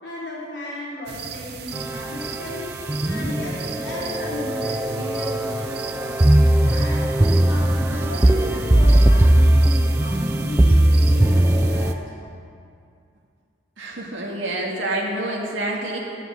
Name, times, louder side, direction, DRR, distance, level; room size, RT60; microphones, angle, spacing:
voice 1, 0.0-2.7 3.0-7.0 7.5-12.1, left 1 dB, 70° left, -6 dB, 3.6 m, -35 dB
sound 1, 1.1-11.9, right 5 dB, 55° right, 0.7 m, -35 dB
sound 2, 1.7-11.9, right 1 dB, 10° right, 0.3 m, -19 dB
voice 2, 13.8-16.0, right 1 dB, 80° right, -2 dB, 2.0 m, -27 dB
12.5 x 7.5 x 6.7 m, 2.4 s
head